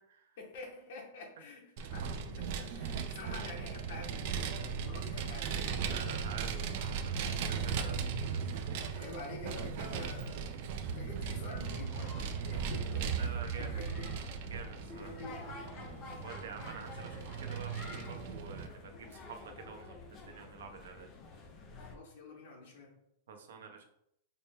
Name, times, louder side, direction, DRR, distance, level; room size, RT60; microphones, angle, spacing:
voice 1, 0.4-5.9 8.9-10.6 10.8-14.1 15.0-16.0 21.7-22.9, left 2 dB, 55° left, 1 dB, 1.0 m, -48 dB
Vehicle, 1.8-18.7, right 6 dB, 50° right, 0.4 m, -37 dB
voice 2, 5.9-8.7 13.2-13.8 14.5-15.1 16.2-19.9 20.2-21.1 23.3-23.8, right 6 dB, 85° right, 4 dB, 0.7 m, -48 dB
sound 1, 11.5-22.0, left 3 dB, 25° left, 0.5 m, -50 dB
4.1 x 2.1 x 3.5 m, 0.75 s
supercardioid pair, 165°, 0 cm